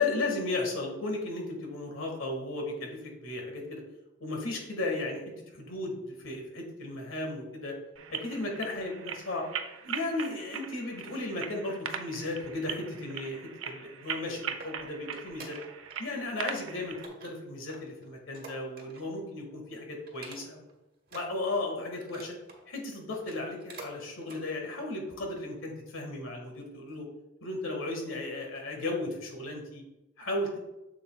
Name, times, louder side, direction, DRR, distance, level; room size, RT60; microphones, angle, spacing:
voice 1, 0.0-3.8 4.2-5.2 5.5-7.8 8.1-9.5 9.8-15.6 16.0-20.7 21.1-22.4 22.7-27.1 27.4-29.8 30.2-30.6, left 2 dB, 90° left, 1 dB, 1.6 m, -35 dB
sound 1, 8.0-17.1, right 7 dB, 85° right, 0.6 m, -40 dB
sound 2, 14.0-16.0 16.3-16.7 17.0-19.2 19.5-19.7 20.1-20.7 21.0-22.6 23.1-23.9 24.2-24.4 24.9-25.0, right 3 dB, 45° right, 1.2 m, -49 dB
7.5 x 6.9 x 2.3 m, 0.97 s
head